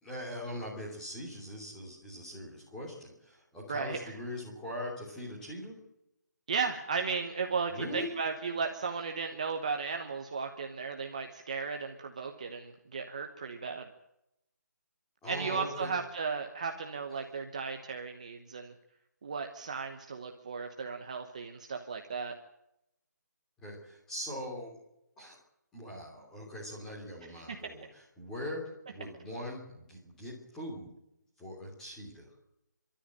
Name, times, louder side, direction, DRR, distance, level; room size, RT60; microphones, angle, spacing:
voice 1, 0.0-5.8 7.7-8.1 15.2-15.9 23.6-24.8 25.2-25.4 25.7-27.9 28.2-30.9 31.4-32.3, left 1 dB, 5° left, -4 dB, 3.1 m, -41 dB
voice 2, 3.7-4.1 6.5-13.9 15.3-18.7 19.2-22.3 27.5-27.7, right 5 dB, 25° right, 5 dB, 1.1 m, -35 dB
29.5 x 13.0 x 8.9 m, 0.85 s
hypercardioid pair, 180°, 10 cm